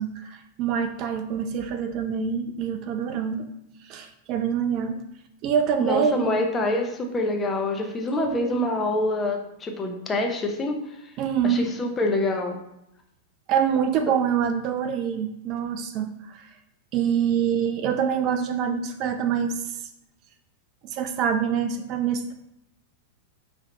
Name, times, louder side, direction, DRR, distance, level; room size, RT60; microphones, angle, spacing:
voice 1, 0.0-3.5 3.8-5.0 5.4-6.3 8.2-8.7 11.2-11.6 13.5-16.5 16.9-19.8 20.8-22.3, right 7 dB, 40° right, 8 dB, 0.4 m, -25 dB
voice 2, 5.8-10.8 11.4-12.6, left 2 dB, 20° left, 2 dB, 0.8 m, -26 dB
5.6 x 2.9 x 3.3 m, 0.81 s
figure-of-eight pair, 95°, 0 cm